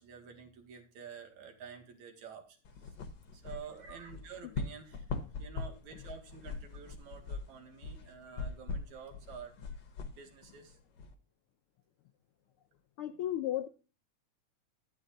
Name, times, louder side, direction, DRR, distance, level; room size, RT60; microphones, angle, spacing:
voice 1, 0.0-2.9 3.3-5.0 5.4-9.5 10.1-10.8, right 6 dB, 80° right, 5 dB, 3.3 m, -49 dB
sound 1, 2.6-11.1, left 4 dB, 55° left, 1.3 m, -42 dB
voice 2, 13.0-13.7, left 12 dB, 85° left, 9 dB, 1.2 m, -34 dB
12.5 x 10.0 x 2.7 m, 0.35 s
omnidirectional pair, 3.3 m